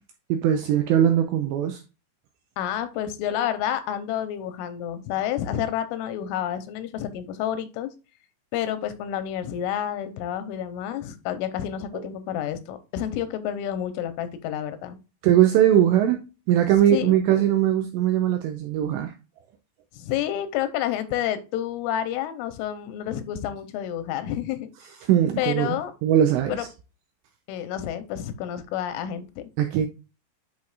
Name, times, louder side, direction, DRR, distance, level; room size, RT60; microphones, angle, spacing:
voice 1, 0.3-1.8 11.9-12.1 15.2-16.2 16.5-19.1 25.0-25.8 26.0-26.7 29.6-29.9, right 11 dB, 85° right, 2.5 m, -20 dB
voice 2, 2.6-7.9 8.5-15.0 16.9-17.2 19.9-24.7 25.4-25.9 26.5-26.7 27.5-29.5, left 10 dB, 85° left, 3.2 m, -29 dB
10.5 x 4.5 x 2.4 m
omnidirectional pair, 5.7 m